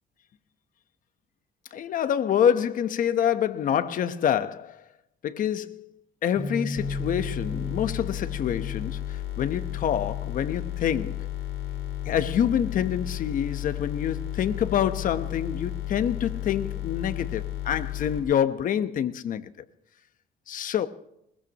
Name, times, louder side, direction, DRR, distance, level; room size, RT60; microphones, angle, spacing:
voice 1, 1.7-4.8 5.2-5.9 6.2-11.3 12.0-19.5 20.5-20.9, left 9 dB, 55° left, 1.1 m, -27 dB
Bass guitar, 6.4-10.8 11.4-12.6, equal, 5° left, 6.3 m, -38 dB
sound 1, 6.8-18.2, left 14 dB, 75° left, 7.6 m, -33 dB
22.0 x 20.5 x 3.0 m
cardioid pair, 110°, 17 cm